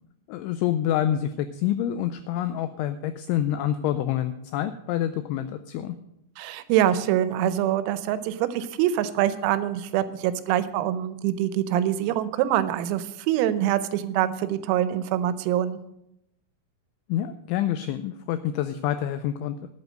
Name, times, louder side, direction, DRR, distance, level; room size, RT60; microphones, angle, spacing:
voice 1, 0.3-6.0 17.1-19.6, left 11 dB, 90° left, 10 dB, 2.6 m, -27 dB
voice 2, 6.4-15.8, right 11 dB, 90° right, 13 dB, 3.5 m, -25 dB
12.0 x 8.4 x 6.3 m, 0.83 s
omnidirectional pair, 6.0 m